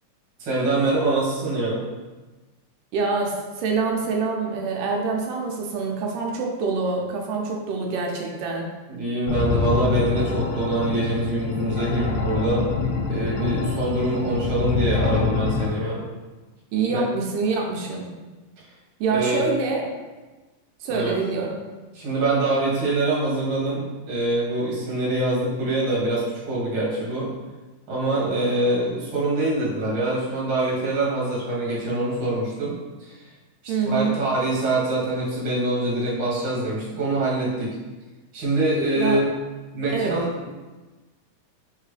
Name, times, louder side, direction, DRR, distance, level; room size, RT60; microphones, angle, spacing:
voice 1, 0.4-1.8 8.9-12.6 13.1-16.0 16.9-17.0 19.1-19.4 20.9-21.1 21.9-27.3 27.9-33.2 33.6-37.8 38.3-39.3 39.7-40.5, right 2 dB, 50° right, -7 dB, 1.9 m, -24 dB
voice 2, 2.9-8.7 16.7-18.1 19.0-19.9 20.8-21.6 33.7-34.2 39.0-39.2 39.9-40.2, right 4 dB, 85° right, 0 dB, 2.3 m, -25 dB
sound 1, 9.3-15.7, left 4 dB, 80° left, 1.6 m, -25 dB
4.3 x 3.7 x 3.2 m, 1.2 s
omnidirectional pair, 3.7 m